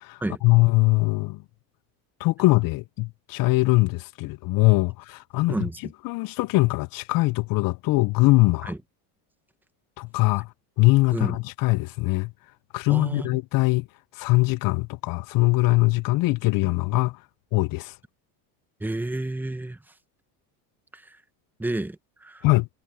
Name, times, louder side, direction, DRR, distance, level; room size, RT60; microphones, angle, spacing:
voice 1, 0.0-1.4 2.2-5.7 6.0-8.7 10.0-10.5 10.8-12.3 12.7-13.9 14.2-17.2 17.5-18.0 22.4-22.7, left 22 dB, 50° left, 0.5 m, -22 dB
voice 2, 5.5-5.8 8.7-8.8 11.1-11.4 12.9-13.3 18.8-19.8 20.9-21.0 21.6-22.0 22.2-22.4, right 2 dB, 5° right, 1.0 m, -29 dB
cardioid pair, 125°, 45 cm